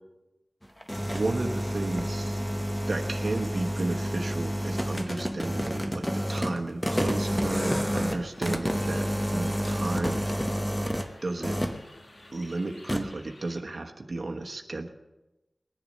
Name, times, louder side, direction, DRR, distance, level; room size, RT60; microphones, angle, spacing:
sound 1, 0.6-11.1 11.4-11.9 12.9-13.0, equal, 10° left, 1.0 m, -29 dB
voice 1, 1.1-2.4 2.8-10.3 11.2-11.6 12.3-14.9, right 2 dB, 65° right, 3 dB, 1.2 m, -33 dB
sound 2, 8.1-13.6, left 1 dB, 75° left, 2.0 m, -53 dB
20.0 x 10.5 x 5.3 m, 1.0 s
wide cardioid pair, 80°, 0 cm